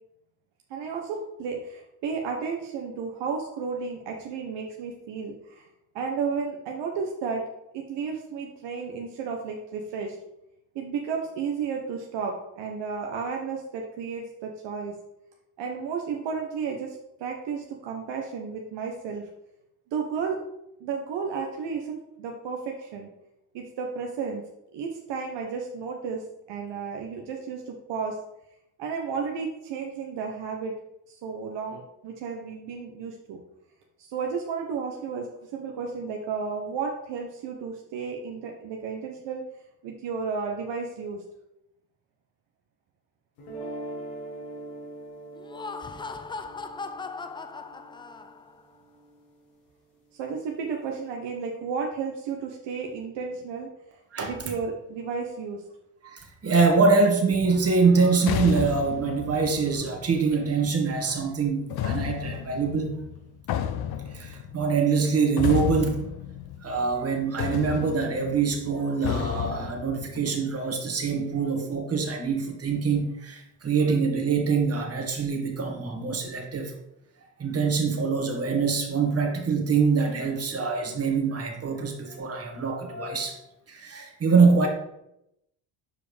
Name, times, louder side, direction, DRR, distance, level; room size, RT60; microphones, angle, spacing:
voice 1, 0.7-5.7 5.9-7.4 7.7-10.2 10.7-15.0 15.6-19.3 19.9-20.4 20.8-23.1 23.5-24.4 24.7-26.2 26.5-28.2 28.8-30.7 31.1-33.4 34.0-39.4 39.8-41.2 50.1-53.7 54.2-55.6, right 5 dB, 65° right, 1 dB, 1.0 m, -33 dB
sound 1, 43.4-49.5, right 2 dB, 80° left, 1.6 m, -42 dB
Laughter, 45.3-48.6, left 4 dB, 10° left, 0.3 m, -38 dB
voice 2, 56.0-63.0 64.1-66.0 66.6-76.7 77.4-83.4 83.7-84.7, right 4 dB, 30° right, 2 dB, 1.7 m, -24 dB
sound 2, 57.3-60.7 61.7-67.1 67.4-70.2, left 9 dB, 55° left, 0.7 m, -33 dB
6.9 x 4.8 x 3.4 m, 0.84 s
hypercardioid pair, 65°, 46 cm